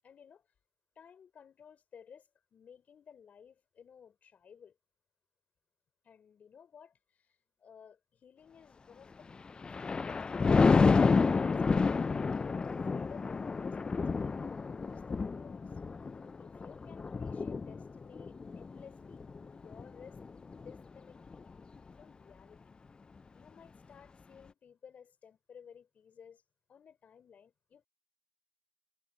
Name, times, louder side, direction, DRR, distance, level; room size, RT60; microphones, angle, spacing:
voice 1, 0.0-0.5 0.9-4.8 6.0-9.3 12.1-15.7 16.4-19.3 19.5-20.2 20.5-21.5 22.0-22.6 23.3-26.4 26.7-27.9, left 7 dB, 45° left, 3.3 m, -56 dB
Thunder, 9.3-20.8 21.3-21.6, left 4 dB, 25° left, 0.4 m, -30 dB
supercardioid pair, 70°, 4 cm